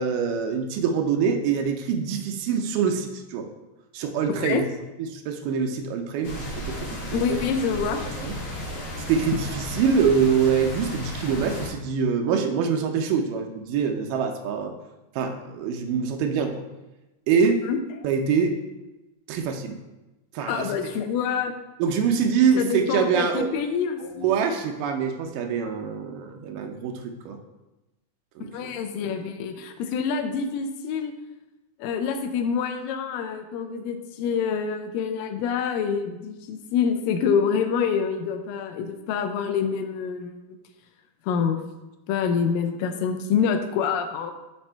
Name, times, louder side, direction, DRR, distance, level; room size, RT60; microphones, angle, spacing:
voice 1, 0.0-3.5 3.9-4.6 5.0-7.4 8.2-8.3 9.1-14.7 15.2-16.6 17.3-17.6 18.0-18.6 19.3-19.8 20.3-20.7 21.8-23.5 24.0-27.4 28.4-28.7, right 6 dB, 80° right, 4 dB, 2.2 m, -25 dB
sound 1, 6.2-11.7, equal, 55° left, 1.8 m, -34 dB
voice 2, 7.1-8.0 17.6-18.1 20.5-21.5 22.6-24.3 28.5-31.1 31.8-40.4 41.3-41.6 42.1-44.3, left 6 dB, 85° left, 7 dB, 2.3 m, -26 dB
6.0 x 4.2 x 4.4 m, 1.0 s
omnidirectional pair, 3.9 m